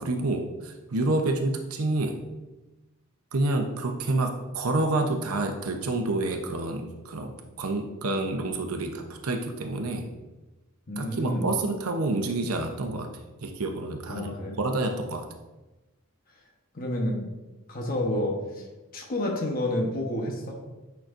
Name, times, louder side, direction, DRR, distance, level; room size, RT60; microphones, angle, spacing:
voice 1, 0.0-2.2 3.3-7.3 7.6-10.1 11.0-13.1 13.4-15.3, right 2 dB, 90° right, 4 dB, 0.8 m, -28 dB
voice 2, 10.9-11.5 14.1-14.6 16.7-17.3 17.7-18.6 18.9-20.6, left 1 dB, 40° left, -1 dB, 1.0 m, -29 dB
9.0 x 5.8 x 2.5 m, 1.1 s
head